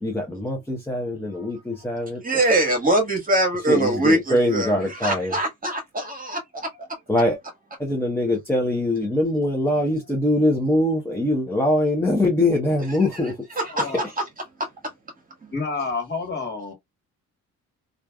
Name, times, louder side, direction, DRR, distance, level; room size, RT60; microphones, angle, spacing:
voice 1, 0.0-2.2 3.7-5.3 7.1-7.4 7.8-13.4, left 1 dB, 5° left, 1.0 m, -23 dB
voice 2, 1.9-6.9 13.6-14.1 14.6-14.7 15.4-15.5, right 1 dB, 30° right, 1.5 m, -23 dB
voice 3, 15.5-16.7, left 4 dB, 35° left, 1.8 m, -29 dB
3.2 x 2.6 x 2.3 m
cardioid pair, 90°, 30 cm